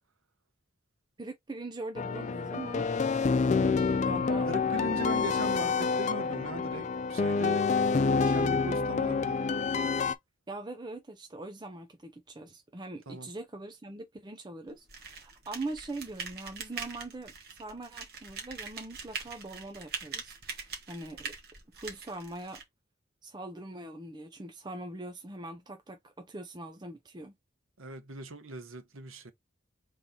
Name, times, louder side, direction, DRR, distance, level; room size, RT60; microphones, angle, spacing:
voice 1, 1.2-2.9 3.6-4.5 10.5-21.3 21.8-22.6 23.2-27.3, right 2 dB, 20° right, 0.5 m, -42 dB
sound 1, 2.0-10.2, left 4 dB, 35° left, 0.4 m, -28 dB
voice 2, 4.5-7.7 8.1-9.4 13.1-13.3 27.8-29.3, right 2 dB, 85° right, 1.0 m, -39 dB
sound 2, 14.9-22.6, right 5 dB, 50° right, 1.5 m, -42 dB
3.7 x 3.1 x 4.0 m
head